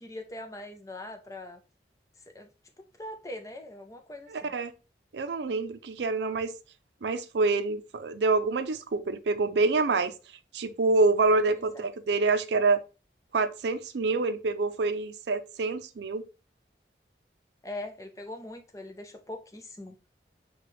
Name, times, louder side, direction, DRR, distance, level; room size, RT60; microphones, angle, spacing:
voice 1, 0.0-1.6 2.3-2.5 2.8-4.5 11.5-11.8 17.6-20.0, left 1 dB, 20° left, 0.5 m, -41 dB
voice 2, 4.3-4.7 5.1-6.5 7.0-10.1 10.5-12.8 13.3-16.2, right 3 dB, 80° right, 0.5 m, -26 dB
5.8 x 2.3 x 3.1 m
head